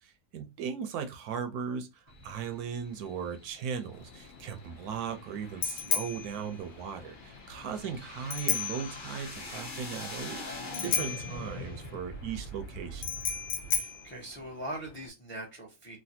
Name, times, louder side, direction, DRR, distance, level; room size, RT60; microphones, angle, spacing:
voice 1, 0.0-10.4 10.8-13.0, right 7 dB, 75° right, 1.1 m, -37 dB
sound 1, 2.1-13.8, left 1 dB, 40° left, 0.9 m, -44 dB
Bicycle bell, 3.9-15.1, left 8 dB, 85° left, 0.5 m, -35 dB
voice 2, 13.6-16.0, right 1 dB, 10° left, 0.7 m, -42 dB
3.2 x 2.5 x 2.7 m
omnidirectional pair, 1.7 m